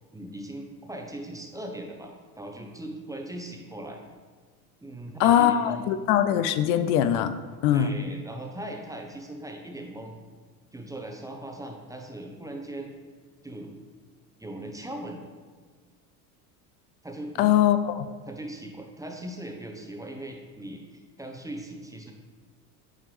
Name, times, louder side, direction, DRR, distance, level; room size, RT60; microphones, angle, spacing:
voice 1, 0.1-4.0 4.8-5.9 7.7-10.2 10.7-12.9 13.4-13.7 14.4-15.2 17.0-17.6 18.3-22.1, right 1 dB, 5° right, 2 dB, 0.7 m, -39 dB
voice 2, 5.2-7.3 7.6-8.0 17.4-18.1, left 10 dB, 70° left, 11 dB, 0.5 m, -21 dB
9.0 x 3.4 x 3.2 m, 1.4 s
supercardioid pair, 85°, 46 cm